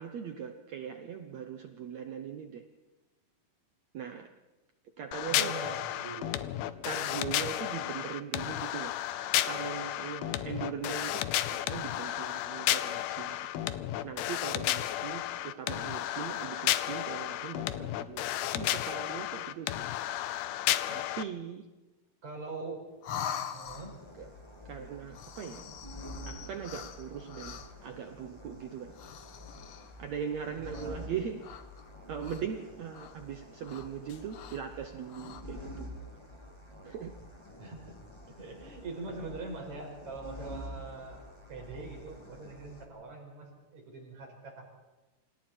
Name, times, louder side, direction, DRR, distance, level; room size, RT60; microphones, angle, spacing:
voice 1, 0.0-2.7 3.9-4.3 5.0-5.8 6.8-9.0 9.5-13.7 14.0-19.9 20.9-21.7 24.2-24.3 24.7-25.6 26.3-29.0 30.0-31.6 32.1-36.0 36.8-37.1, right 7 dB, 70° right, 7 dB, 1.7 m, -40 dB
sound 1, 5.1-21.2, left 13 dB, 80° left, 2.7 m, -33 dB
voice 2, 5.3-6.4 22.2-22.9 23.5-24.0 30.6-31.1 37.6-38.0 38.4-41.2 41.5-44.6, right 3 dB, 45° right, 1 dB, 6.7 m, -43 dB
sound 2, 23.0-24.2 25.1-27.9 28.9-30.0 30.6-31.1 31.4-32.6 32.9-33.1 33.6-34.7 35.0-35.4, left 8 dB, 65° left, 1.7 m, -43 dB
sound 3, 23.7-42.8, equal, 10° left, 2.0 m, -48 dB
29.5 x 26.5 x 4.5 m, 1.1 s
omnidirectional pair, 4.4 m